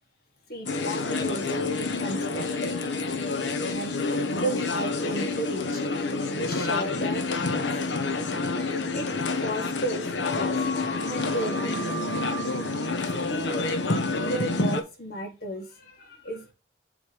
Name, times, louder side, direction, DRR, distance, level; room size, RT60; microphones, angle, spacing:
voice 1, 0.5-1.5 2.0-2.8 3.7-5.8 6.4-7.7 8.9-9.1 9.4-10.6 11.0-12.0 13.1-16.5, right 1 dB, 55° left, 3 dB, 1.6 m, -34 dB
sound 1, 0.7-14.8, left 3 dB, 80° left, 1.0 m, -28 dB
7.1 x 3.3 x 5.0 m, 0.28 s
head